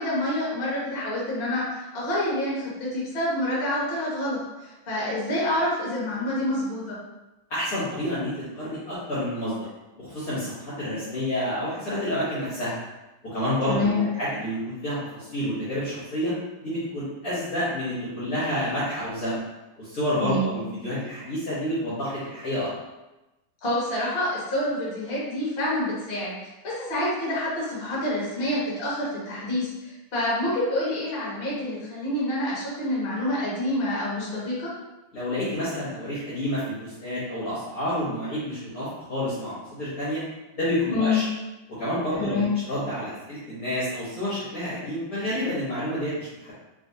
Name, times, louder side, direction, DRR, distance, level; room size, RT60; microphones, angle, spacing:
voice 1, 0.0-7.0 13.7-14.1 20.2-20.5 23.6-26.4 26.6-34.7 40.9-41.2 42.2-42.6, left 1 dB, 35° left, -7 dB, 1.1 m, -27 dB
voice 2, 7.5-9.7 9.9-12.8 13.2-16.3 16.6-19.4 19.8-22.7 35.1-40.2 40.5-41.2 41.7-46.5, left 1 dB, 50° left, -10 dB, 1.3 m, -29 dB
3.2 x 3.1 x 2.7 m, 1.0 s
omnidirectional pair, 2.4 m